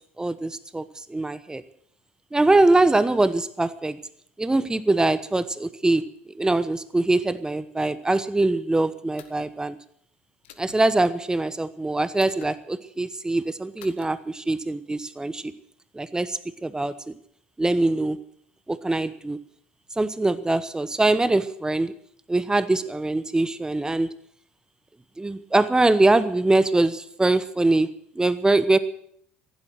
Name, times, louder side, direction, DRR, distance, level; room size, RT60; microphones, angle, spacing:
voice 1, 0.2-1.6 2.3-4.0 4.4-9.8 10.6-15.5 15.9-17.1 17.6-18.2 18.7-19.4 20.0-21.9 22.3-24.1 25.2-28.8, right 2 dB, 10° right, 15 dB, 1.0 m, -23 dB
sound 1, 9.2-9.5 10.4-10.8 12.2-12.5 13.8-14.1, left 11 dB, 75° left, 1.5 m, -48 dB
15.0 x 11.5 x 7.7 m, 0.67 s
figure-of-eight pair, 60°, 6 cm